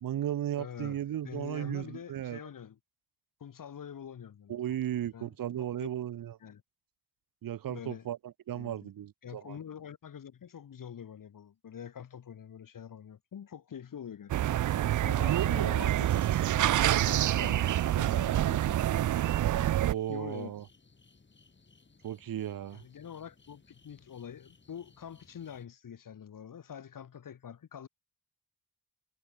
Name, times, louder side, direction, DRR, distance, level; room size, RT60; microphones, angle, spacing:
voice 1, 0.0-2.4 4.5-6.4 7.4-9.6 15.2-16.3 16.7-17.0 19.8-20.6 22.0-22.8, right 11 dB, 85° right, 1.3 m, -35 dB
voice 2, 0.6-2.8 3.4-4.6 5.1-5.9 6.4-6.6 7.7-8.1 8.5-8.9 9.2-14.4 14.8-18.8 20.1-20.6 22.7-27.9, left 8 dB, 75° left, 4.2 m, -45 dB
sound 1, 14.3-19.9, right 12 dB, 65° right, 0.5 m, -27 dB
sound 2, 15.1-25.7, left 4 dB, 35° left, 4.2 m, -62 dB
cardioid pair, 90°, 33 cm